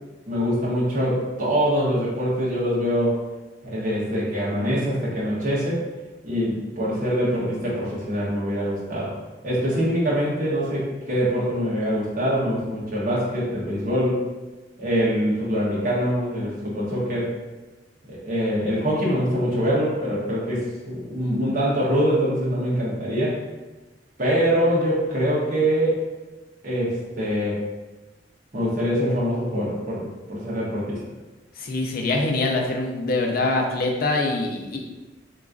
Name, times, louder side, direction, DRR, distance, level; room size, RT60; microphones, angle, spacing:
voice 1, 0.3-3.2 3.6-5.8 6.2-9.1 9.4-14.2 14.8-17.3 18.1-23.4 24.2-26.0 26.6-27.6 28.5-31.0, equal, 50° right, -6 dB, 1.1 m, -24 dB
voice 2, 31.6-34.8, left 2 dB, 60° left, 1 dB, 0.5 m, -24 dB
3.6 x 3.0 x 2.5 m, 1.1 s
head